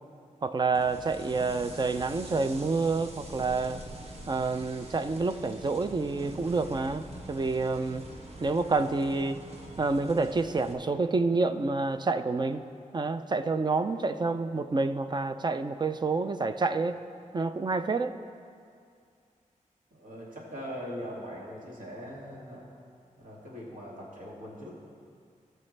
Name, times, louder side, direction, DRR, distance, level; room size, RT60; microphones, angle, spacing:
voice 1, 0.4-3.8 4.3-8.0 8.4-9.4 9.8-12.6 12.9-17.0 17.3-18.1, right 3 dB, 35° right, 10 dB, 0.4 m, -28 dB
sound 1, 0.7-10.7, right 1 dB, 50° right, 1.3 m, -44 dB
voice 2, 19.9-22.7 23.2-24.7, equal, 75° right, -5 dB, 2.4 m, -41 dB
19.0 x 6.4 x 3.3 m, 2.3 s
wide cardioid pair, 110°, 14 cm